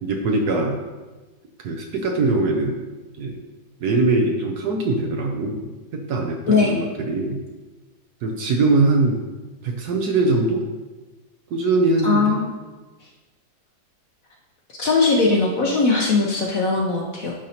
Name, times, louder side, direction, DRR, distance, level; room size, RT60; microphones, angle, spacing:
voice 1, 0.0-0.8 1.6-2.8 3.2-3.4 3.8-7.4 8.2-9.2 9.6-10.7 11.5-12.4, right 3 dB, 65° right, 3 dB, 1.1 m, -22 dB
voice 2, 12.0-12.5 14.8-17.3, left 4 dB, 60° left, -1 dB, 1.0 m, -19 dB
10.5 x 5.3 x 2.9 m, 1.2 s
omnidirectional pair, 2.1 m